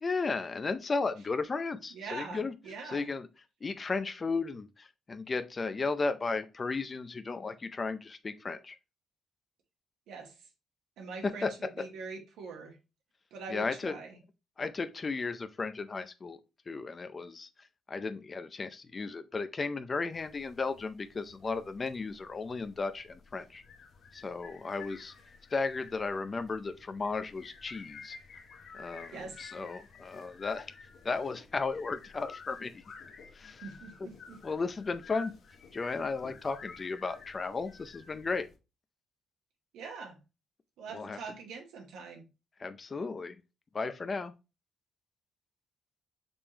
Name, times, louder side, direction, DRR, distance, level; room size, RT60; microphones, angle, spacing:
voice 1, 0.0-2.5 2.8-3.3 3.6-8.8 11.2-11.5 11.8-11.9 13.5-13.9 14.6-16.4 16.7-23.6 24.1-25.1 25.5-28.2 28.7-30.7 31.0-32.8 33.3-33.6 34.0-34.1 34.4-35.3 35.7-38.5 40.9-41.2 42.6-43.4 43.7-44.3, left 4 dB, 30° left, 0.4 m, -35 dB
voice 2, 1.9-3.1 10.1-10.3 11.0-12.8 13.3-14.1 29.1-29.5 33.6-34.4 39.7-40.2 40.8-42.2, right 4 dB, 85° right, 1.0 m, -43 dB
sound 1, 20.1-38.6, left 5 dB, 60° left, 0.9 m, -52 dB
5.1 x 3.5 x 2.8 m
cardioid pair, 90°, 0 cm